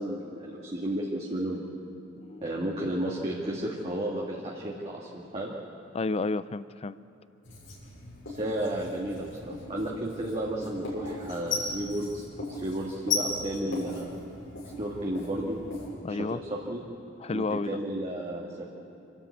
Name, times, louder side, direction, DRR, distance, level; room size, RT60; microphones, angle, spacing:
voice 1, 0.0-1.6 2.4-5.5 8.3-14.1 14.8-15.6 16.2-16.8 17.3-18.7, right 1 dB, 35° right, -4 dB, 2.0 m, -33 dB
voice 2, 5.9-7.0 16.0-16.4 17.2-17.7, left 3 dB, 30° left, 16 dB, 0.4 m, -31 dB
Writing, 7.4-15.9, left 3 dB, 80° left, 6.3 m, -37 dB
27.0 x 13.0 x 8.4 m, 2.7 s
head